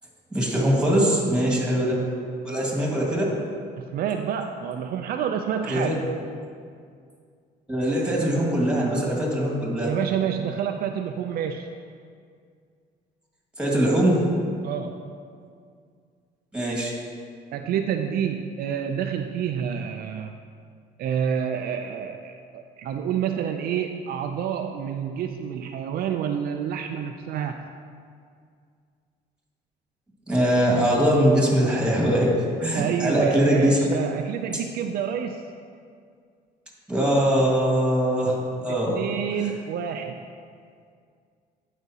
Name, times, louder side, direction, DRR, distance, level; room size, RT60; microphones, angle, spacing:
voice 1, 0.3-1.9 2.4-3.2 5.7-5.9 7.7-9.9 13.6-14.2 16.5-16.9 30.3-32.3 32.6-33.8 36.9-39.0, right 1 dB, 5° right, -3 dB, 1.8 m, -22 dB
voice 2, 3.8-6.0 9.8-11.7 14.6-15.1 17.5-20.3 21.0-27.6 32.6-35.4 38.9-40.3, right 8 dB, 60° right, 5 dB, 0.4 m, -28 dB
11.5 x 5.0 x 2.8 m, 2.2 s
cardioid pair, 110°, 17 cm